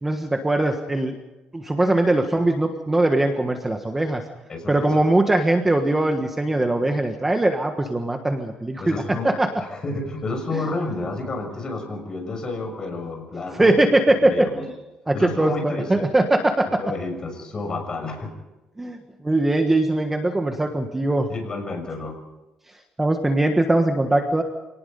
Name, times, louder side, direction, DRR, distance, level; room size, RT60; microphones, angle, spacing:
voice 1, 0.0-1.2 1.5-4.2 4.7-9.5 10.5-10.6 13.6-14.3 14.6-14.7 15.1-16.7 18.8-19.0 19.2-21.3 23.0-24.4, right 2 dB, 10° right, 5 dB, 1.4 m, -21 dB
voice 2, 4.5-5.1 8.8-13.8 14.2-14.6 15.1-16.1 16.7-18.3 21.3-22.1, left 2 dB, 30° left, 3 dB, 6.5 m, -30 dB
27.5 x 18.5 x 5.3 m, 1.0 s
cardioid pair, 155°, 2 cm